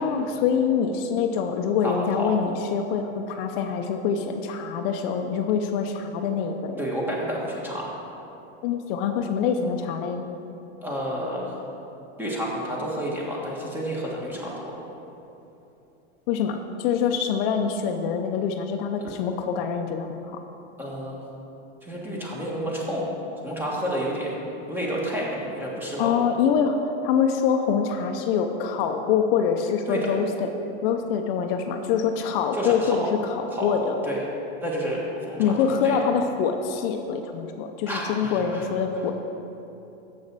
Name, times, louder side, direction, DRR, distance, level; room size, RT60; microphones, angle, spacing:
voice 1, 0.0-6.8 8.6-10.3 16.3-20.2 26.0-26.8 27.0-30.5 30.8-33.9 35.4-39.1, left 7 dB, 60° left, 5 dB, 0.6 m, -25 dB
voice 2, 1.8-2.3 6.8-7.9 10.8-11.6 12.2-14.8 19.0-19.1 20.8-21.2 21.8-23.1 23.4-24.4 24.7-26.3 29.9-30.0 32.5-33.1 33.5-34.2 34.6-35.6 35.8-36.1 37.9-38.8, equal, 5° right, -4 dB, 1.6 m, -30 dB
7.3 x 6.4 x 6.1 m, 2.9 s
supercardioid pair, 135°, 33 cm